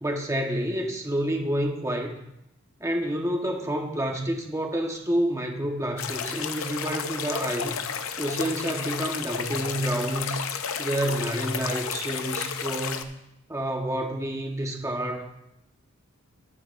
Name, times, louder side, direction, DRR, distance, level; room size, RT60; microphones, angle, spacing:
voice 1, 0.0-2.2 2.8-7.8 8.2-10.4 10.8-13.1 13.5-15.3, right 1 dB, 15° right, 2 dB, 1.1 m, -29 dB
sound 1, 6.0-13.0, left 7 dB, 70° left, 0.7 m, -32 dB
21.0 x 7.5 x 2.6 m, 0.85 s
head